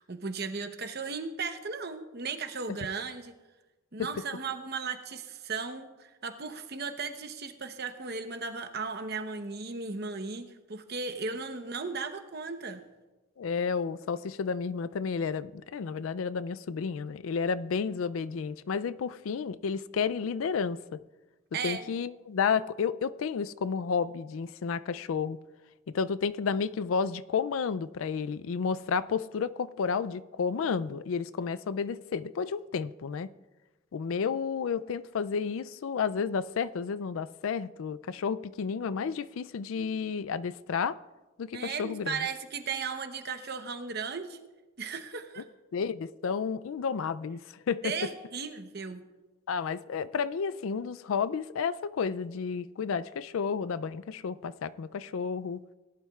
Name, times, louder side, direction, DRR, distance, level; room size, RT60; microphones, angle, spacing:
voice 1, 0.0-3.3 3.9-12.8 21.5-21.9 41.5-44.4 44.8-45.4 47.8-49.0, right 5 dB, 50° right, 0.9 m, -36 dB
voice 2, 13.4-21.0 21.6-25.4 25.9-33.3 33.9-41.0 41.4-42.2 45.7-47.9 49.5-55.6, left 6 dB, 70° left, 0.4 m, -31 dB
18.5 x 11.0 x 2.4 m
head